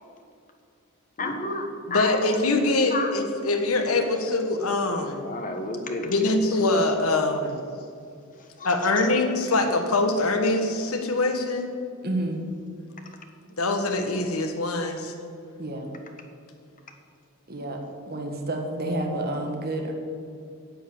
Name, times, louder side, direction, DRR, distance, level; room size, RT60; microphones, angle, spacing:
voice 1, 1.2-2.6 2.9-3.1 3.7-3.8 5.1-6.4 8.6-8.7, left 2 dB, 40° left, 5 dB, 1.3 m, -32 dB
voice 2, 1.9-5.2 6.1-7.6 8.6-11.7 13.6-15.1, left 2 dB, 80° left, 5 dB, 1.4 m, -24 dB
voice 3, 12.0-12.4 15.6-16.0 17.5-19.9, right 1 dB, 45° right, 3 dB, 1.6 m, -30 dB
10.0 x 7.6 x 8.4 m, 2.4 s
head